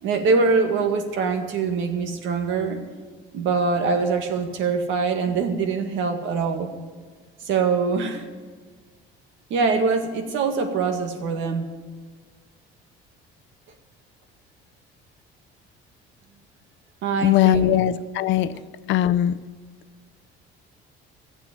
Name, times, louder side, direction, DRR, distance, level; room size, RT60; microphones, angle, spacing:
voice 1, 0.0-2.8 3.3-6.7 7.4-8.3 9.5-11.7 17.0-17.7 18.5-18.7, right 4 dB, 70° right, 6 dB, 1.9 m, -23 dB
voice 2, 17.2-18.5 18.9-19.4, left 12 dB, 70° left, 13 dB, 0.6 m, -20 dB
14.5 x 7.8 x 9.4 m, 1.5 s
cardioid pair, 130°, 20 cm